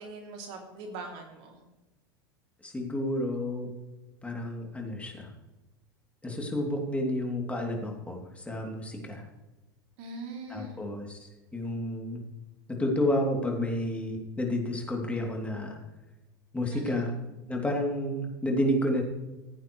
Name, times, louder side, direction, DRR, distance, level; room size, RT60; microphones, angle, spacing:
voice 1, 0.0-1.6 10.0-10.8 16.7-17.1, right 3 dB, 60° right, 2 dB, 3.0 m, -41 dB
voice 2, 2.6-3.7 4.2-5.3 6.2-9.2 10.5-12.2 12.8-15.8 16.5-17.1 17.5-19.0, left 1 dB, 10° left, 0 dB, 2.9 m, -30 dB
16.0 x 8.7 x 3.2 m, 1.1 s
hypercardioid pair, 90°, 12 cm